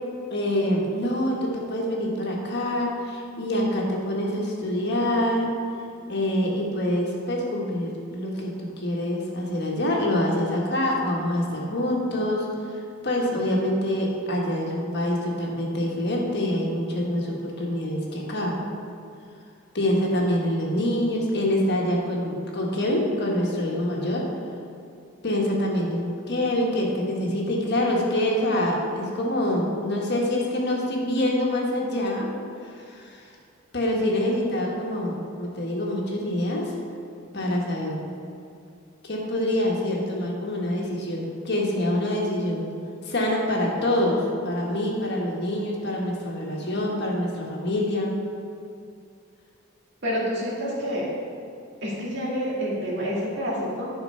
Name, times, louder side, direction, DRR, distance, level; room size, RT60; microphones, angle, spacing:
voice 1, 0.3-5.5 6.1-18.6 19.7-24.3 25.2-32.3 32.6-33.2 33.7-36.7 37.3-38.1 39.0-42.7 43.0-48.1, left 1 dB, 50° left, -2 dB, 1.4 m, -26 dB
voice 2, 50.0-51.1 51.8-53.9, equal, 55° right, -5 dB, 2.2 m, -28 dB
11.0 x 4.4 x 5.5 m, 2.5 s
head